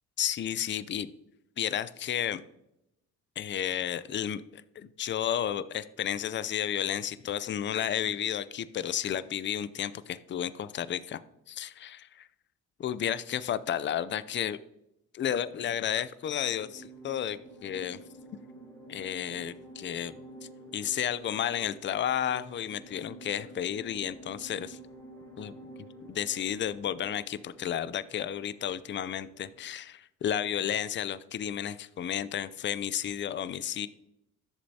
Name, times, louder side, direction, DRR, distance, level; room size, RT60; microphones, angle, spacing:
voice 1, 0.2-1.1 1.6-2.4 3.4-11.2 11.5-12.3 12.8-14.6 15.1-18.0 18.9-20.2 20.7-24.8 25.4-25.5 26.1-33.9, left 10 dB, 40° left, 15 dB, 0.5 m, -32 dB
sound 1, 16.4-29.7, right 2 dB, 15° left, 2.6 m, -50 dB
11.0 x 6.7 x 2.8 m, 0.82 s
cardioid pair, 90°, 30 cm